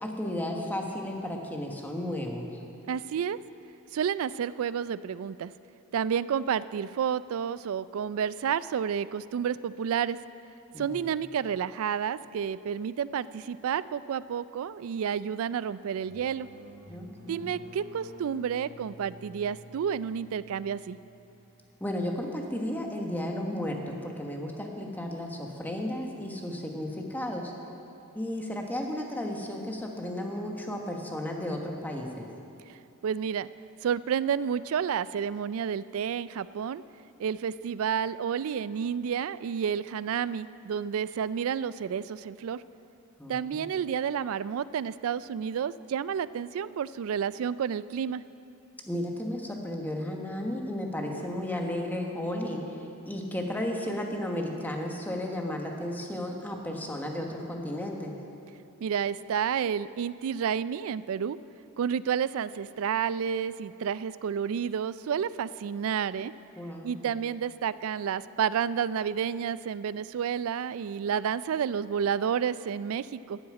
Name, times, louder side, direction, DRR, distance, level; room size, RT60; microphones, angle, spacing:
voice 1, 0.0-2.5 10.7-11.0 16.9-17.5 21.8-27.5 28.1-32.3 43.2-43.7 48.9-52.6 53.1-58.2 66.6-67.1, left 1 dB, 10° left, 1 dB, 1.2 m, -34 dB
voice 2, 2.9-3.4 3.9-5.5 5.9-10.2 10.8-16.5 17.3-21.0 32.7-32.8 33.0-33.5 33.8-36.8 37.2-42.6 43.3-48.2 58.8-61.4 61.8-66.3 66.8-73.4, right 7 dB, 70° right, 17 dB, 0.3 m, -30 dB
sound 1, 15.9-21.5, right 1 dB, 45° right, 2.6 m, -50 dB
12.5 x 7.1 x 8.7 m, 2.7 s
head